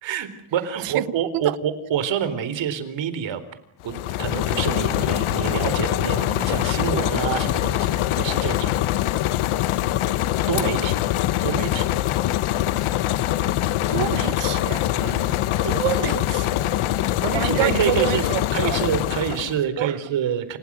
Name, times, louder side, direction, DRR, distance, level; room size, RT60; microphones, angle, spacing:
voice 1, 0.0-3.4 3.8-8.8 10.5-10.9 11.4-11.9 15.0-15.3 17.2-18.2 18.5-20.6, right 8 dB, 60° right, 4.2 m, -27 dB
voice 2, 0.8-1.2 1.4-1.6 13.9-14.8 15.6-16.7 17.3-18.8 19.8-20.0, right 14 dB, 85° right, 1.4 m, -27 dB
sound 1, 3.8-19.6, left 13 dB, 75° left, 1.4 m, -23 dB
29.5 x 27.0 x 6.3 m
cardioid pair, 165°, 50 cm